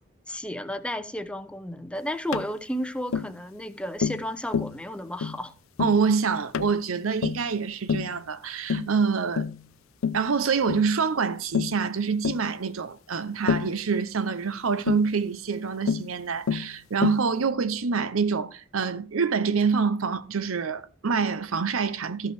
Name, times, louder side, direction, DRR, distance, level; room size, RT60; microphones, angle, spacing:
voice 1, 0.3-5.5, equal, 5° left, 0.7 m, -33 dB
Tap, 2.3-2.5 3.1-3.3 4.0-4.3 4.5-4.8 5.2-5.4 5.8-6.0 6.5-6.8 7.2-7.5 7.9-8.1 8.7-8.9 9.4-9.6 10.0-10.3 10.7-10.9 11.5-11.8 12.2-12.4 13.5-13.8 14.9-15.1 15.9-16.1 16.5-16.7 17.0-17.3, left 6 dB, 75° left, 0.5 m, -27 dB
voice 2, 5.8-9.5 10.1-22.3, right 5 dB, 75° right, 0.7 m, -26 dB
13.0 x 5.6 x 4.6 m
head